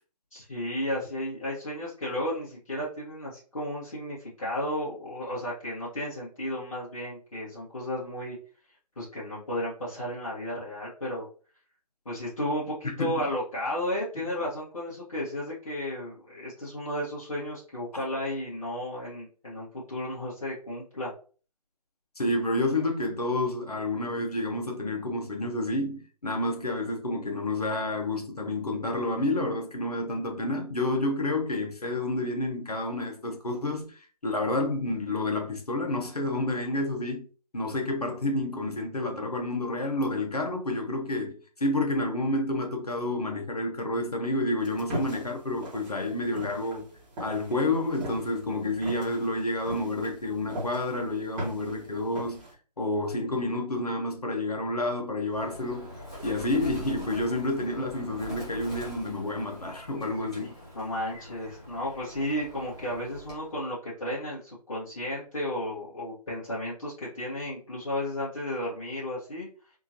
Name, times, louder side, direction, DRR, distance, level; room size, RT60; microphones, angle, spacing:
voice 1, 0.3-8.4 9.0-11.3 12.0-21.1 46.3-46.8 60.7-69.5, left 1 dB, 50° left, 1.6 m, -33 dB
voice 2, 12.8-13.3 14.2-14.3 22.2-37.2 37.5-46.9 47.2-52.4 52.8-55.9 56.2-60.6, left 2 dB, 65° left, 1.1 m, -29 dB
sound 1, 44.6-52.5, right 1 dB, 10° right, 1.2 m, -40 dB
Bird, 55.3-63.5, equal, 10° left, 0.5 m, -43 dB
3.6 x 2.7 x 2.9 m
figure-of-eight pair, 150°, 21 cm